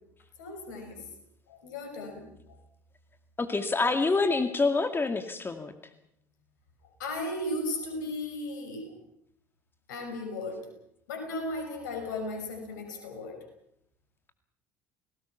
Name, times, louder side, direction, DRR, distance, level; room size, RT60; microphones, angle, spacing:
voice 1, 0.4-1.0 1.5-2.3 7.0-8.9 9.9-10.7 11.1-13.4, left 2 dB, 75° left, 5 dB, 5.9 m, -36 dB
voice 2, 3.4-5.7, left 3 dB, 20° left, 7 dB, 2.2 m, -26 dB
29.5 x 19.0 x 5.8 m, 0.74 s
hypercardioid pair, 60°, 10 cm